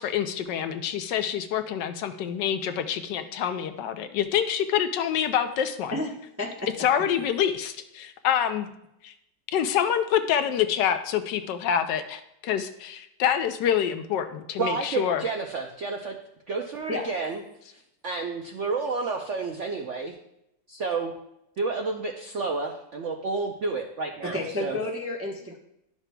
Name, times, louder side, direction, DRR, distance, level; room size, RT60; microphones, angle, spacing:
voice 1, 0.0-6.0 6.8-8.7 9.0-9.1 9.5-15.2, left 9 dB, 75° left, 9 dB, 1.2 m, -26 dB
voice 2, 5.9-6.7 16.9-17.0 24.2-25.6, left 2 dB, 15° right, -1 dB, 0.4 m, -31 dB
voice 3, 14.6-16.2 16.5-17.4 17.7-20.1 20.7-21.1 21.6-24.8, right 4 dB, 70° right, 1 dB, 0.7 m, -30 dB
11.5 x 5.9 x 2.2 m, 0.81 s
omnidirectional pair, 2.0 m